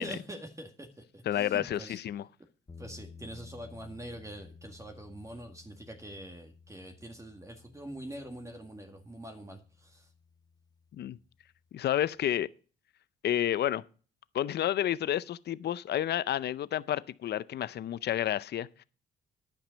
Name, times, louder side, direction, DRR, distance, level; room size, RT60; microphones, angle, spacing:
voice 1, 0.0-2.0 2.8-10.1, right 1 dB, 15° right, 1.8 m, -44 dB
voice 2, 1.3-2.2 11.0-11.2 11.7-12.5 13.2-13.8 14.3-18.8, left 11 dB, 55° left, 0.6 m, -30 dB
sound 1, 2.7-11.6, left 5 dB, 20° left, 0.8 m, -54 dB
10.5 x 8.9 x 5.2 m
cardioid pair, 90°, 20 cm